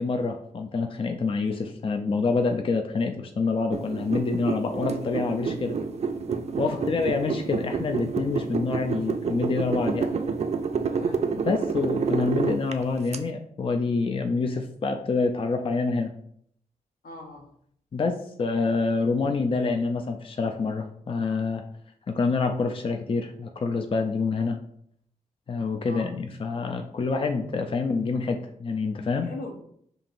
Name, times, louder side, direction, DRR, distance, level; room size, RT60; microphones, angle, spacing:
voice 1, 0.0-5.8 6.6-10.1 11.5-16.1 17.9-21.6 22.1-24.6 25.5-29.3, left 4 dB, 40° left, 5 dB, 0.4 m, -27 dB
puodel sukas letai, 3.7-13.2, right 5 dB, 50° right, 0.4 m, -29 dB
voice 2, 10.9-11.4 17.0-17.5 25.8-26.1 29.2-29.6, left 1 dB, 80° left, 1 dB, 0.9 m, -40 dB
5.2 x 2.9 x 2.5 m, 0.68 s
cardioid pair, 65°, 15 cm